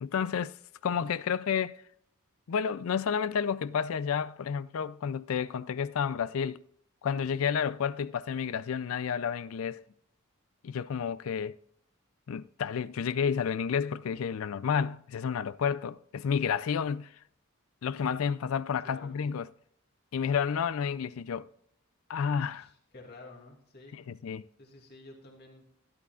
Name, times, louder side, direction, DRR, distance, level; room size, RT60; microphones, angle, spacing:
voice 1, 0.0-0.5 0.8-1.8 2.5-6.6 7.0-9.8 10.6-11.5 12.3-17.1 17.8-19.5 20.1-21.5 22.1-22.7 24.1-24.4, left 7 dB, 75° left, 0.4 m, -30 dB
voice 2, 18.8-19.2 22.6-23.9 24.6-25.6, left 2 dB, 50° left, 2.6 m, -51 dB
12.5 x 11.5 x 2.4 m
head